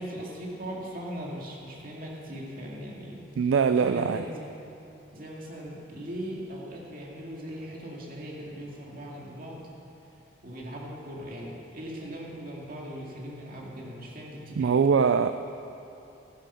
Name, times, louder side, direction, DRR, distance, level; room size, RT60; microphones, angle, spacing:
voice 1, 0.0-4.6 5.1-9.6 10.4-14.8, equal, 45° right, -3 dB, 2.2 m, -39 dB
voice 2, 3.4-4.2 14.6-15.3, right 6 dB, 75° right, 10 dB, 0.4 m, -22 dB
14.5 x 10.5 x 5.6 m, 2.9 s
head